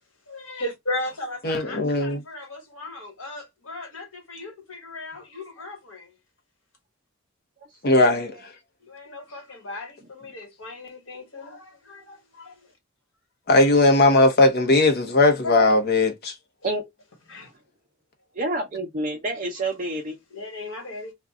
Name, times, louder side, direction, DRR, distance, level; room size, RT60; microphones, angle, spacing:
voice 1, 0.3-6.1 8.8-12.7 15.4-15.7 17.3-17.5 20.3-21.1, left 2 dB, 80° left, 1.4 m, -36 dB
voice 2, 1.4-2.2 7.8-8.4 13.5-16.3, left 2 dB, 55° left, 0.8 m, -18 dB
voice 3, 18.4-20.2, right 2 dB, 40° right, 0.7 m, -28 dB
2.6 x 2.3 x 3.5 m
head